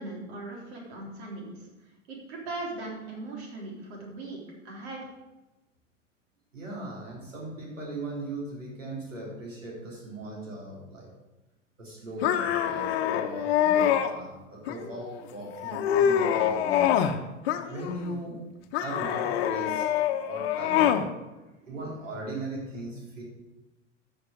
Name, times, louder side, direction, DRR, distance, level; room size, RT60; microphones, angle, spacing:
voice 1, 0.0-1.6 2.1-4.4 4.6-5.0, right 2 dB, 55° right, -1 dB, 3.7 m, -39 dB
voice 2, 6.5-11.1 11.8-17.0 17.6-18.5 18.8-23.2, right 1 dB, 85° right, -3 dB, 3.7 m, -39 dB
sound 1, 12.2-14.1 14.7-15.2 15.6-17.2 17.5-18.2 18.7-21.1, left 9 dB, 55° left, 1.0 m, -25 dB
13.0 x 6.5 x 5.1 m, 1.0 s
figure-of-eight pair, 90°, 37 cm